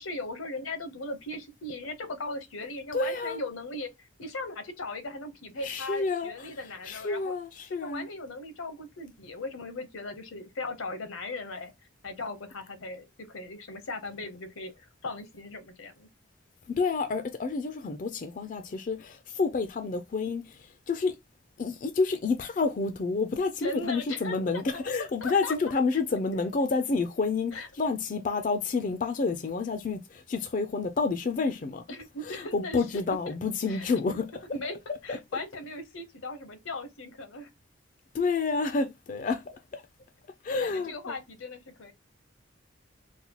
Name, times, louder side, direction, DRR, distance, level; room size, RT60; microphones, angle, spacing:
voice 1, 0.0-3.9 4.2-7.3 7.7-11.7 12.0-16.1 23.6-24.8 25.2-25.5 27.5-27.7 31.9-32.8 33.3-33.4 33.7-33.9 34.5-34.8 35.0-37.5 40.5-41.9, left 2 dB, 85° left, 0.8 m, -38 dB
voice 2, 2.9-3.4 5.6-8.1 16.7-20.4 20.9-21.1 21.6-31.8 32.2-34.3 35.1-35.2 38.1-39.4 39.7-39.8 40.4-41.1, left 4 dB, 40° left, 0.3 m, -29 dB
4.0 x 2.2 x 2.9 m
head